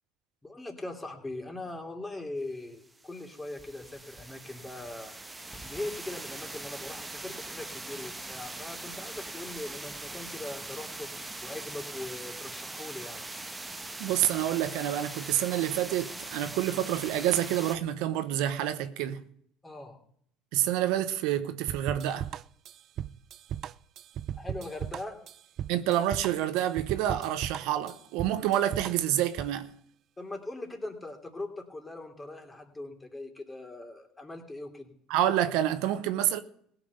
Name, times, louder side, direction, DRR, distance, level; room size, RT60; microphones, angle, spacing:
voice 1, 0.4-5.1 5.6-11.1 11.4-13.2 19.6-20.0 24.3-25.2 30.2-34.9, left 2 dB, 15° left, 2.8 m, -40 dB
sound 1, 2.8-17.8, right 2 dB, 15° right, 1.1 m, -41 dB
voice 2, 14.0-19.2 20.5-22.3 25.7-29.7 35.1-36.4, right 12 dB, 75° right, 0.9 m, -28 dB
sound 2, 21.7-29.6, right 10 dB, 50° right, 0.4 m, -37 dB
16.5 x 6.0 x 8.0 m
supercardioid pair, 100°, 0 cm